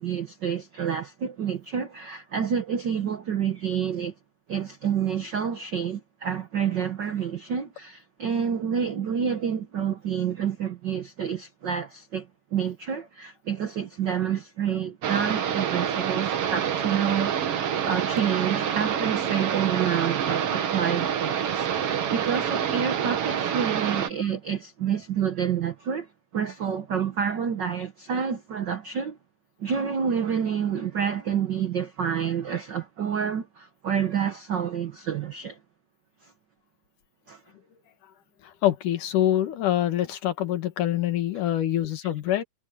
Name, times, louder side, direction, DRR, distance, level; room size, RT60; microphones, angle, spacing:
voice 1, 0.0-4.1 4.5-17.3 17.8-29.2 29.6-35.6 36.2-36.3 37.3-37.4 42.3-42.4, right 7 dB, 75° right, 1.0 m, -28 dB
sound 1, 15.0-24.1, right 8 dB, 55° right, 2.2 m, -27 dB
voice 2, 38.4-42.4, left 12 dB, 85° left, 3.1 m, -25 dB
omnidirectional pair, 3.5 m